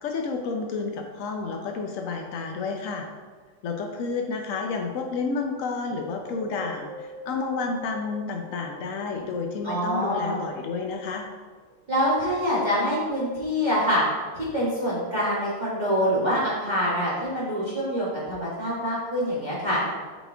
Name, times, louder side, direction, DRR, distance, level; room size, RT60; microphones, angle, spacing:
voice 1, 0.0-3.1 3.6-11.3, left 4 dB, 90° left, 3 dB, 0.7 m, -30 dB
Wind, 5.8-9.3 9.9-11.1 11.7-11.8, right 3 dB, 45° right, 1.4 m, -43 dB
voice 2, 9.6-10.4 11.9-14.0 14.3-19.8, equal, 25° right, -8 dB, 1.4 m, -25 dB
8.1 x 4.2 x 3.4 m, 1.5 s
omnidirectional pair, 2.2 m